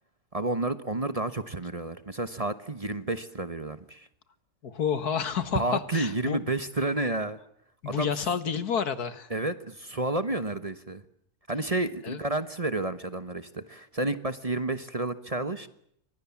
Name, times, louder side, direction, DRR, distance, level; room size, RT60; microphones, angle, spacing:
voice 1, 0.3-4.1 5.5-7.4 7.8-8.1 9.3-11.0 11.5-15.7, right 2 dB, 25° right, 12 dB, 1.1 m, -30 dB
voice 2, 4.6-6.4 7.8-9.3 12.0-12.2, left 7 dB, 90° left, 12 dB, 2.1 m, -29 dB
29.0 x 24.5 x 7.2 m, 0.72 s
omnidirectional pair, 1.6 m